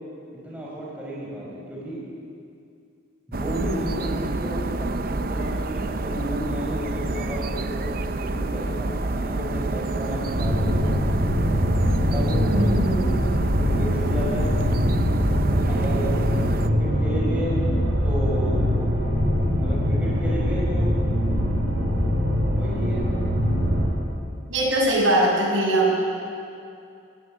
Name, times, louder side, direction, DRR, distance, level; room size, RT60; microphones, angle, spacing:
voice 1, 0.4-2.0 3.3-11.0 12.1-12.5 13.3-14.5 15.7-16.3 16.6-17.6 18.0-18.7 19.6-20.9 22.5-23.1, equal, 5° right, -6 dB, 5.4 m, -32 dB
sound 1, 3.3-16.7, right 2 dB, 45° right, 0.7 m, -28 dB
sound 2, 10.2-23.9, equal, 70° right, 5.1 m, -23 dB
voice 2, 12.4-13.1 24.5-25.9, right 1 dB, 90° right, -4 dB, 6.0 m, -21 dB
21.0 x 16.5 x 8.8 m, 2.5 s
head